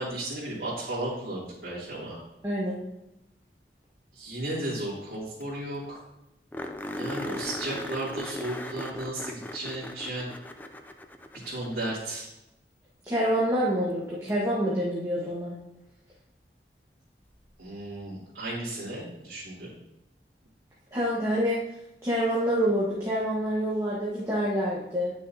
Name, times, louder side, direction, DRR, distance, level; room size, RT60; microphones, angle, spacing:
voice 1, 0.0-2.2 4.1-6.0 6.9-10.3 11.4-12.3 17.6-19.7, right 1 dB, 65° right, -11 dB, 2.9 m, -34 dB
voice 2, 2.4-2.8 13.1-15.6 20.9-21.6 22.0-25.1, equal, 15° right, -7 dB, 1.4 m, -27 dB
sound 1, 5.1-5.2 5.4-5.5 5.8-5.9 6.5-11.9 14.3-14.4 17.2-17.3, left 1 dB, 10° left, 0.4 m, -38 dB
10.5 x 6.3 x 2.8 m, 0.89 s
head